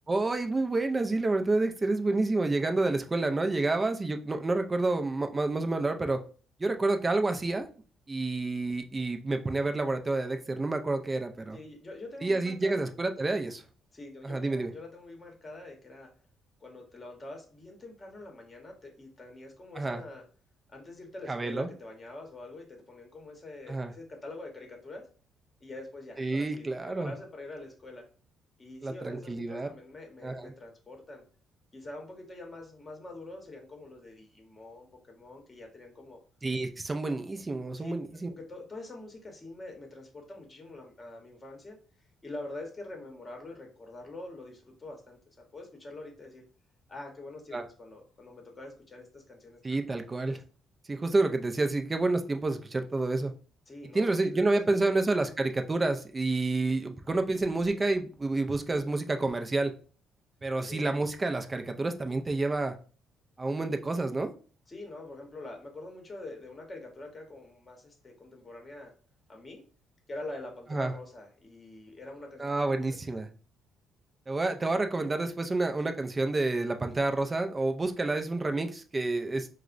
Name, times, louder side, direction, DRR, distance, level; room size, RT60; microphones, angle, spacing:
voice 1, 0.1-6.2 6.6-7.7 8.1-11.6 12.2-13.6 14.2-14.7 19.8-20.0 21.3-21.7 23.7-23.9 26.2-27.1 28.8-29.7 30.2-30.5 36.4-38.3 47.5-47.6 49.6-50.4 50.9-53.3 53.9-59.7 60.4-62.7 63.4-64.3 70.7-70.9 72.4-73.3 74.3-79.5, right 2 dB, 20° right, 6 dB, 0.4 m, -29 dB
voice 2, 11.5-12.9 13.9-16.1 16.6-20.2 20.7-25.0 25.6-28.0 28.6-31.2 31.7-36.2 37.7-37.9 38.3-41.8 42.2-45.2 45.5-46.4 46.9-49.6 50.3-50.4 53.7-55.0 60.6-60.9 64.7-68.9 69.3-69.6 70.1-73.2, left 2 dB, 20° left, 2 dB, 0.9 m, -45 dB
4.7 x 2.0 x 2.4 m, 0.40 s
cardioid pair, 120°, 0 cm